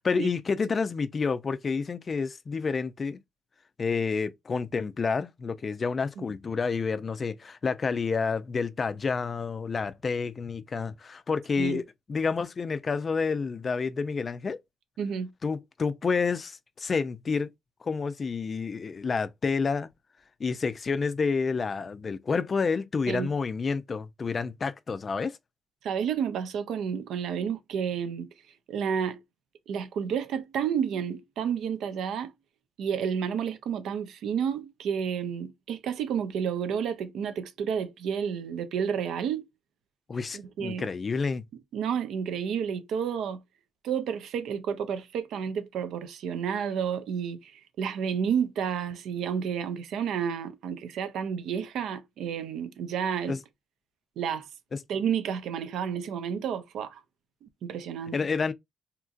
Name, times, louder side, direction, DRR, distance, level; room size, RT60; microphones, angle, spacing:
voice 1, 0.0-3.2 3.8-11.8 12.1-14.6 15.4-17.5 17.8-19.9 20.4-25.4 40.1-41.4 53.3-53.4 54.7-54.8 58.1-58.5, left 5 dB, 40° left, 0.3 m, -29 dB
voice 2, 15.0-15.3 23.1-23.3 25.8-28.3 28.7-29.2 29.7-32.3 32.8-39.5 40.3-40.9 41.7-43.4 43.8-53.4 54.2-54.5 54.9-57.0 57.4-58.2, right 7 dB, 80° right, 0.5 m, -30 dB
2.9 x 2.4 x 2.4 m
cardioid pair, 90°, 0 cm